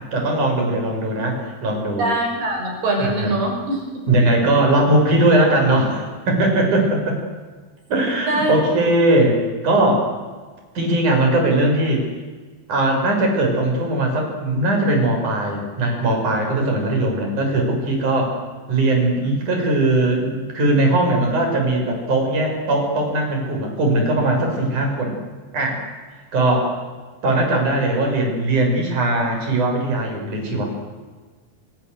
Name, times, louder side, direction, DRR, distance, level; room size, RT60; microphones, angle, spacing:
voice 1, 0.1-2.1 3.0-3.4 4.1-7.2 7.9-10.1 10.8-12.1 12.7-18.4 18.7-25.2 25.5-25.8 26.3-26.7 27.2-30.6, right 1 dB, 45° right, 2 dB, 7.5 m, -19 dB
voice 2, 2.0-4.1 8.2-8.5, right 2 dB, 65° right, 1 dB, 7.7 m, -23 dB
26.0 x 25.0 x 8.0 m, 1.4 s
omnidirectional pair, 4.8 m